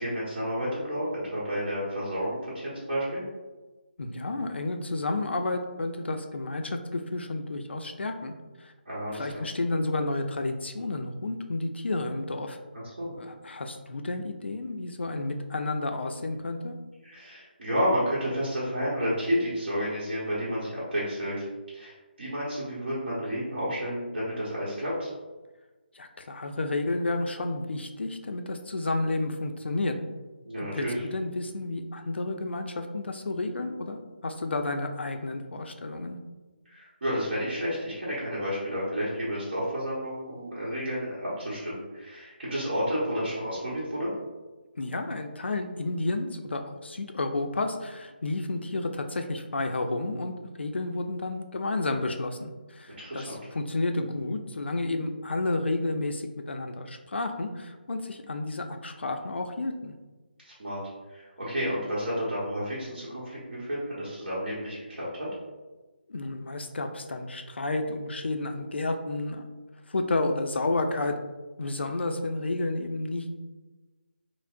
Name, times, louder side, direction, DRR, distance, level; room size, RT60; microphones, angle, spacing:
voice 1, 0.0-3.2 8.8-9.4 13.0-13.1 17.0-21.5 21.7-25.1 30.5-31.0 36.6-44.1 53.0-53.4 60.4-60.8 61.1-65.3, equal, 60° right, -10 dB, 1.1 m, -31 dB
voice 2, 4.0-8.3 8.6-8.7 9.1-12.6 13.2-16.8 25.9-30.0 30.6-36.2 44.8-59.9 66.1-69.4 69.9-71.1 71.6-73.3, left 2 dB, 80° left, 5 dB, 0.4 m, -31 dB
4.5 x 2.0 x 2.5 m, 1.2 s
figure-of-eight pair, 160°, 6 cm